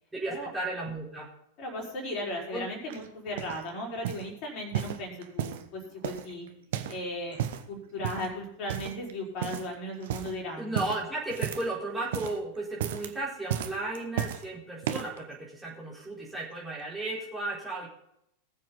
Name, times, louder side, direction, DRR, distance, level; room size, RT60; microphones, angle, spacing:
voice 1, 0.1-1.3 2.5-2.6 10.6-17.9, right 2 dB, 10° right, -6 dB, 4.5 m, -34 dB
voice 2, 1.6-6.5 6.9-7.4 7.7-10.8, left 1 dB, 40° left, -1 dB, 4.6 m, -36 dB
sound 1, 2.9-3.6 4.0-4.3 4.7-5.7 6.0-7.0 7.3-7.7 8.0-8.3 8.7-9.1 9.4-9.7 10.0-10.3 10.7-11.8 12.0-12.4 12.7-13.1 13.5-14.4 14.8-15.2 15.9-16.0, right 10 dB, 55° right, 1.2 m, -34 dB
20.0 x 7.6 x 4.0 m, 0.77 s
figure-of-eight pair, 90°, 0 cm